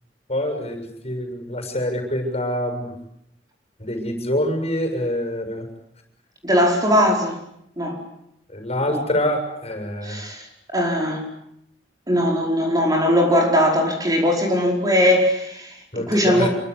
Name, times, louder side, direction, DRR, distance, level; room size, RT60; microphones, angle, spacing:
voice 1, 0.3-2.9 3.8-5.7 8.5-10.2 15.9-16.5, left 1 dB, 35° left, 5 dB, 7.0 m, -25 dB
voice 2, 6.4-7.4 7.8-8.0 8.9-9.0 10.0-10.4 10.7-11.2 12.1-16.5, equal, 20° right, 1 dB, 5.0 m, -20 dB
28.0 x 24.0 x 8.4 m, 0.76 s
head